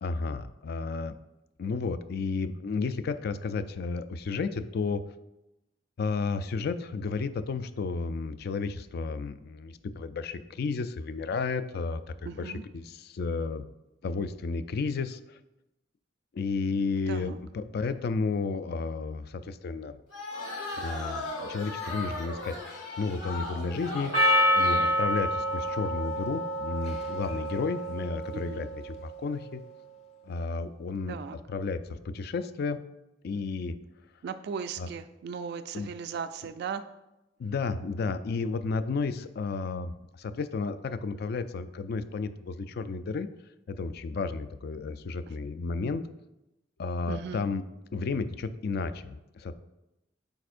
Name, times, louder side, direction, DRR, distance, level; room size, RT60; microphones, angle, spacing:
voice 1, 0.0-1.1 1.6-5.0 6.0-13.7 14.0-15.4 16.3-20.0 20.8-24.1 24.5-29.6 30.3-32.8 33.2-33.8 34.8-34.9 35.7-35.9 37.4-39.9 40.2-43.3 43.7-46.0 46.8-47.6 47.9-49.5, left 4 dB, 60° left, 12 dB, 0.4 m, -32 dB
voice 2, 12.3-12.6 17.1-17.4 28.3-28.7 31.1-31.4 34.2-36.8 47.1-47.4, right 6 dB, 60° right, 11 dB, 0.3 m, -37 dB
sound 1, 20.1-25.0, left 2 dB, 80° left, 1.9 m, -37 dB
Percussion, 24.1-28.7, equal, 35° left, 0.8 m, -27 dB
9.1 x 4.3 x 2.5 m, 0.92 s
head